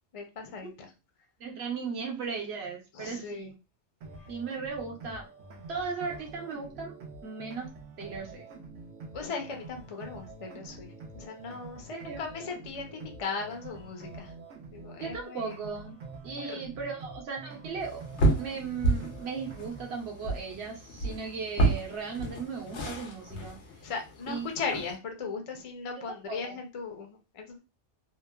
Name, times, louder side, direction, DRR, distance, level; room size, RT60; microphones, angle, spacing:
voice 1, 0.1-0.9 2.9-3.5 9.1-14.3 14.7-15.6 16.3-16.6 23.8-27.6, left 4 dB, 40° left, 3 dB, 0.5 m, -38 dB
voice 2, 1.4-3.5 4.3-5.3 5.7-7.7 8.0-8.4 11.9-12.2 15.0-16.0 16.2-18.0 18.4-23.6 24.3-24.5 26.3-26.6, right 5 dB, 65° right, 0 dB, 1.1 m, -37 dB
sound 1, 4.0-20.0, right 3 dB, 90° right, 1.0 m, -46 dB
sound 2, 17.8-24.9, right 2 dB, 80° left, 1.0 m, -31 dB
2.9 x 2.1 x 2.2 m, 0.29 s
omnidirectional pair, 1.2 m